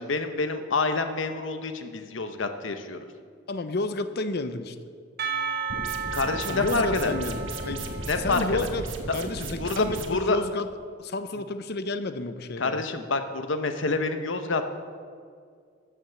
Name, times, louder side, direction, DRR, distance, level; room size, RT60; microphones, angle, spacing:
voice 1, 0.0-3.1 6.1-7.2 8.1-8.7 9.1-9.2 9.6-10.4 12.6-14.7, left 3 dB, 85° left, 8 dB, 1.0 m, -27 dB
voice 2, 3.5-4.8 6.5-8.8 9.1-10.7 11.0-12.9, left 2 dB, 55° left, 11 dB, 0.7 m, -31 dB
Percussion, 5.2-9.1, right 5 dB, 55° right, 1.2 m, -34 dB
sound 1, 5.7-10.1, right 2 dB, 80° right, 1.4 m, -35 dB
14.0 x 7.4 x 7.0 m, 2.1 s
head